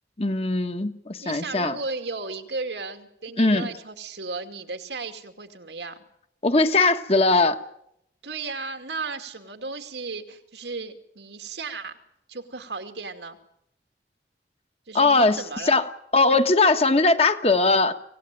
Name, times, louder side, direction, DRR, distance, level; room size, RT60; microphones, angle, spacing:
voice 1, 0.2-1.8 3.4-3.7 6.4-7.6 14.9-15.9 16.1-17.9, left 3 dB, 35° left, 8 dB, 1.3 m, -20 dB
voice 2, 1.2-6.0 8.2-11.9 12.3-13.4 14.9-15.8, right 3 dB, 85° right, 6 dB, 2.6 m, -35 dB
25.5 x 18.0 x 9.1 m, 0.77 s
head